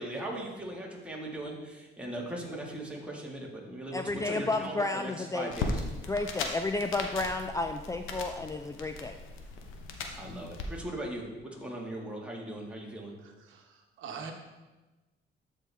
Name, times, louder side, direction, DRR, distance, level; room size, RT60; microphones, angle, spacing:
voice 1, 0.0-5.8 10.2-13.1, right 1 dB, 5° right, -2 dB, 2.0 m, -39 dB
voice 2, 3.9-5.5 6.1-9.2, left 2 dB, 15° left, 6 dB, 0.4 m, -32 dB
sound 1, 5.5-10.7, left 3 dB, 90° left, 0.9 m, -38 dB
voice 3, 13.2-14.3, right 6 dB, 85° right, 4 dB, 1.0 m, -44 dB
12.5 x 4.5 x 3.5 m, 1.1 s
cardioid pair, 90°, 20 cm